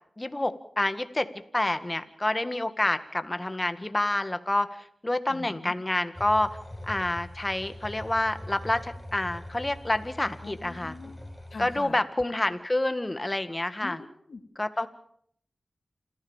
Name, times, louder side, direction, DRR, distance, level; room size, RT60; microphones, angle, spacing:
voice 1, 0.2-6.6 6.9-11.0 11.6-14.0 14.6-14.9, left 1 dB, 25° left, 10 dB, 1.8 m, -28 dB
voice 2, 5.3-5.7 10.4-11.2 11.5-11.9 13.8-14.4, left 4 dB, 75° left, 6 dB, 2.4 m, -42 dB
sound 1, 6.1-11.8, left 1 dB, 5° left, 5.2 m, -43 dB
28.0 x 15.0 x 7.3 m, 0.67 s
cardioid pair, 50°, 0 cm